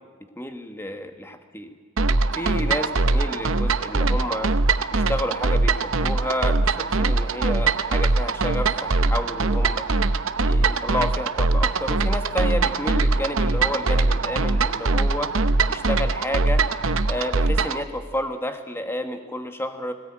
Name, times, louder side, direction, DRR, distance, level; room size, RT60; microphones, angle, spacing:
voice 1, 0.4-1.7 2.3-4.5 4.9-9.9 10.4-15.3 15.7-16.7 17.1-19.9, left 1 dB, 10° left, 6 dB, 1.5 m, -30 dB
sound 1, 2.0-17.8, right 3 dB, 60° right, 0.8 m, -22 dB
20.5 x 19.0 x 8.8 m, 1.5 s
head